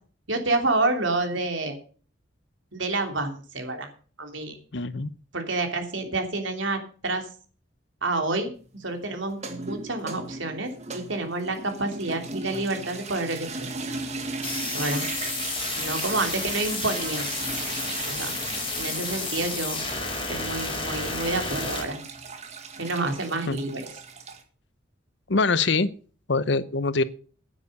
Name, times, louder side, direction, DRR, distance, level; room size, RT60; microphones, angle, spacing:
voice 1, 0.3-1.8 2.7-3.9 4.2-4.6 5.3-7.3 8.0-8.5 8.8-13.7 14.7-15.0 15.8-17.3 18.1-18.4 18.7-19.8 20.3-22.0 22.8-23.9, right 2 dB, 75° right, 5 dB, 3.1 m, -28 dB
voice 2, 4.7-5.1 23.5-23.6 25.3-25.9 26.3-27.0, left 3 dB, 60° left, 16 dB, 0.9 m, -23 dB
sound 1, 9.3-24.4, right 3 dB, 35° right, 1.9 m, -37 dB
sound 2, 14.4-21.8, left 3 dB, 25° left, 5.0 m, -31 dB
10.0 x 9.6 x 6.7 m, 0.40 s
head